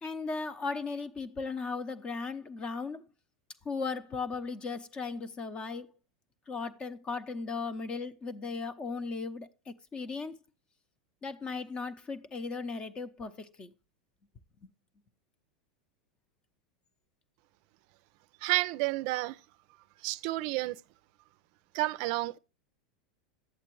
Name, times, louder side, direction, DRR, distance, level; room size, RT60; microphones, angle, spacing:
voice 1, 0.0-3.0 3.6-5.9 6.5-10.3 11.2-13.7 14.6-14.7, left 4 dB, 30° left, 0.8 m, -37 dB
voice 2, 18.4-19.4 20.0-20.8 21.7-22.4, right 18 dB, 55° right, 0.4 m, -30 dB
11.0 x 8.3 x 3.0 m
hypercardioid pair, 90°, 4 cm